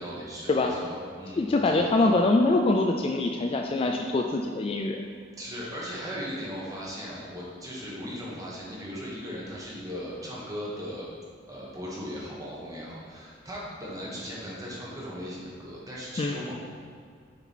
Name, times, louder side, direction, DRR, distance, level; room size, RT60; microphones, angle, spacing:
voice 1, 0.0-2.1 5.4-11.1 11.5-16.5, equal, 20° right, -5 dB, 1.4 m, -38 dB
voice 2, 1.4-5.0 16.2-16.4, left 2 dB, 30° left, 2 dB, 0.3 m, -24 dB
6.7 x 4.4 x 4.3 m, 2.2 s
head